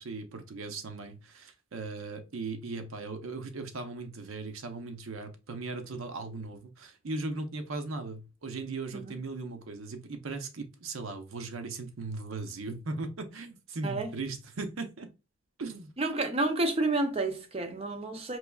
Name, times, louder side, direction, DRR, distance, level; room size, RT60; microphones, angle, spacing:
voice 1, 0.0-15.1 15.6-15.9, right 3 dB, 85° right, 0.7 m, -38 dB
voice 2, 16.0-18.4, right 2 dB, 30° right, 0.5 m, -30 dB
4.6 x 3.0 x 2.3 m
head